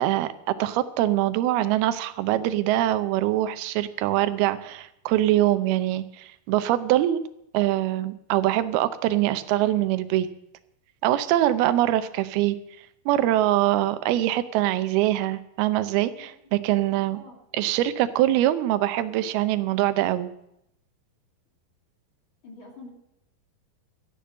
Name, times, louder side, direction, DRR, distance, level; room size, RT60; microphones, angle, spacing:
voice 1, 0.0-7.2 7.5-10.3 11.0-12.6 13.1-17.2 17.5-20.3, right 14 dB, 85° right, 13 dB, 2.7 m, -23 dB
voice 2, 16.2-16.7 17.1-17.4 22.4-22.9, left 2 dB, 35° left, 1 dB, 2.7 m, -46 dB
13.5 x 10.5 x 7.5 m, 0.79 s
omnidirectional pair, 4.4 m